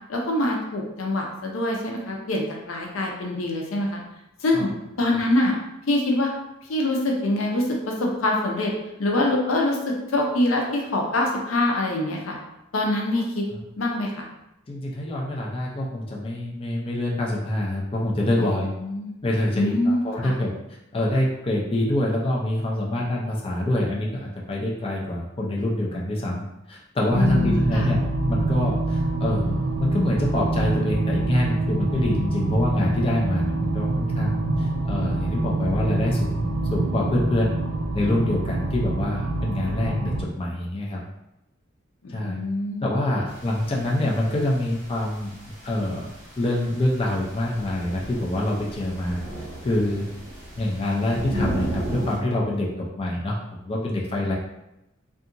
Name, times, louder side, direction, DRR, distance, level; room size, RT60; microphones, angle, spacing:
voice 1, 0.1-4.0 4.4-4.7 5.0-5.5 5.9-6.3 6.7-8.7 9.0-12.3 12.7-13.4 13.8-14.3 18.4-19.1 19.5-20.3 27.1-27.9 42.0-42.8, left 1 dB, 85° left, 0 dB, 0.6 m, -24 dB
voice 2, 14.7-18.7 19.2-20.5 20.9-37.5 37.9-41.0 42.1-42.4 42.8-49.2 49.6-50.1 50.6-53.4 53.6-54.3, left 1 dB, 30° left, -3 dB, 0.4 m, -26 dB
sound 1, 27.1-40.2, right 2 dB, 75° right, 0.4 m, -25 dB
sound 2, 43.3-52.2, right 1 dB, 45° right, 1.1 m, -35 dB
2.7 x 2.4 x 2.5 m, 0.89 s
head